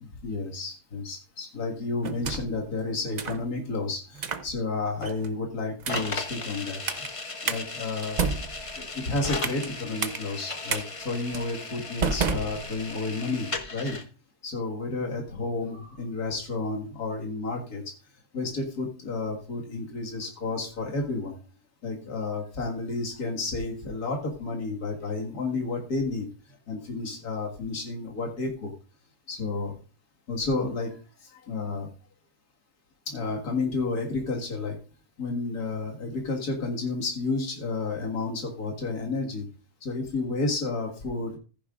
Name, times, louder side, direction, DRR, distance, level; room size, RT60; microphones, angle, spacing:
voice 1, 0.0-7.1 7.4-8.2 8.8-14.0 14.4-17.8 18.3-21.4 21.8-28.7 29.3-29.8 30.3-30.9 31.2-31.9 33.1-34.8 35.2-39.5 39.8-41.4, left 3 dB, 70° left, -1 dB, 2.4 m, -31 dB
sound 1, 2.0-2.6 3.2-3.4 4.2-4.5 5.0-5.3 5.8-6.2 6.9-7.1 7.5-7.6 8.0-9.7 10.0-10.2 10.7-10.8 11.3-11.5 12.0-13.1, right 5 dB, 50° right, 0.5 m, -30 dB
sound 2, 5.9-14.0, left 3 dB, 25° left, 0.8 m, -36 dB
14.5 x 10.0 x 2.5 m, 0.36 s
omnidirectional pair, 1.7 m